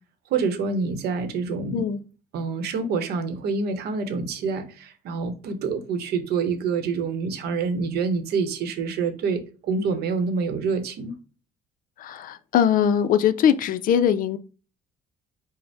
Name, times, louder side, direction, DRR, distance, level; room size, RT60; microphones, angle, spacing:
voice 1, 0.3-1.9 2.3-11.2, right 5 dB, 70° right, 0.8 m, -27 dB
voice 2, 12.0-14.4, left 9 dB, 55° left, 0.4 m, -21 dB
5.1 x 2.1 x 3.3 m
cardioid pair, 110°, 17 cm